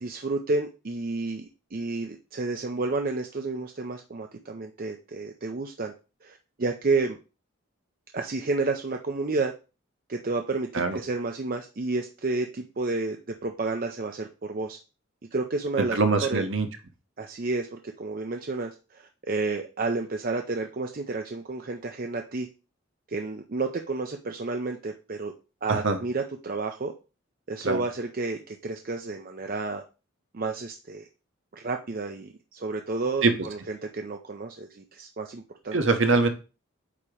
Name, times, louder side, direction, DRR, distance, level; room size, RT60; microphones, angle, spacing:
voice 1, 0.0-5.9 6.2-7.2 8.1-9.5 10.1-14.8 15.3-16.5 17.2-22.5 23.1-25.3 25.6-26.9 27.5-29.8 30.3-31.1 31.5-35.8, right 3 dB, 45° right, 4 dB, 0.5 m, -31 dB
voice 2, 15.9-16.7 25.7-26.0 27.6-27.8 33.2-33.3 35.7-36.3, right 3 dB, 65° right, 6 dB, 1.1 m, -23 dB
8.5 x 2.9 x 4.9 m, 0.31 s
head